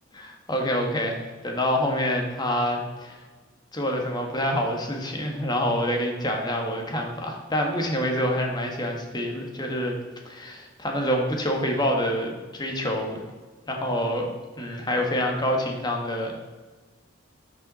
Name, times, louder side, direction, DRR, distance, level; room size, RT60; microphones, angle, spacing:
voice 1, 0.1-1.2 1.4-3.2 3.7-10.0 10.2-13.2 13.7-14.3 14.6-16.3, equal, 20° left, 2 dB, 1.5 m, -26 dB
12.5 x 5.4 x 4.2 m, 1.3 s
head